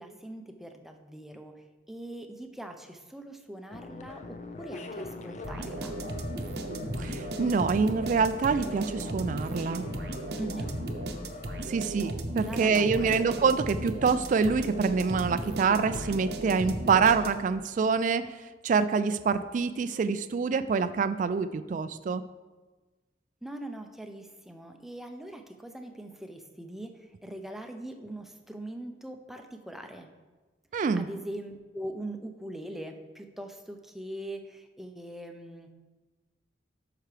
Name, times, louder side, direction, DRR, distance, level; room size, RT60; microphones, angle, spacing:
voice 1, 0.0-6.0 10.4-10.7 12.4-13.2 23.4-30.1 30.9-35.7, right 1 dB, ahead, 4 dB, 0.6 m, -42 dB
sound 1, 3.7-11.6, left 3 dB, 40° left, 0.5 m, -42 dB
sound 2, 5.4-17.6, right 1 dB, 60° right, 0.8 m, -36 dB
voice 2, 7.0-9.9 11.7-18.2 18.6-22.2 30.7-31.1, right 5 dB, 45° right, 11 dB, 0.3 m, -26 dB
12.0 x 5.8 x 3.3 m, 1.3 s
head